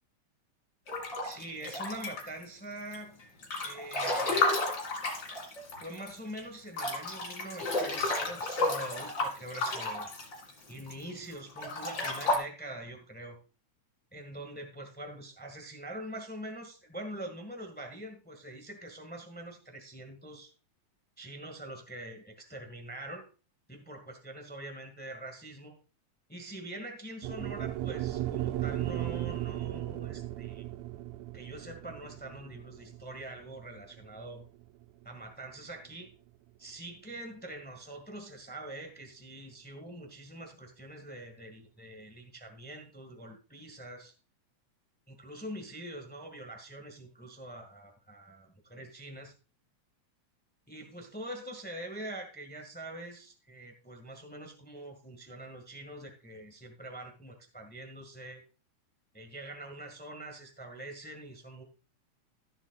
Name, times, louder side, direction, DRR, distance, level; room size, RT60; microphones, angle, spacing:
Breathing / Bathtub (filling or washing) / Splash splatter, 0.9-2.4 2.9-6.1 6.4-6.5 6.7-10.9 11.5-12.4, left 2 dB, 35° left, 2.7 m, -32 dB
voice 1, 1.2-3.2 3.6-4.4 5.8-10.1 10.7-13.4 14.1-20.5 21.2-23.3 23.7-25.8 26.3-30.6 31.3-34.4 35.0-36.1 36.6-44.1 45.1-49.3 50.7-58.4 59.1-61.6, right 1 dB, 10° left, 4 dB, 0.6 m, -44 dB
sound 1, 27.2-35.5, right 13 dB, 75° right, 1.7 m, -36 dB
14.5 x 7.4 x 2.3 m, 0.35 s
omnidirectional pair, 3.5 m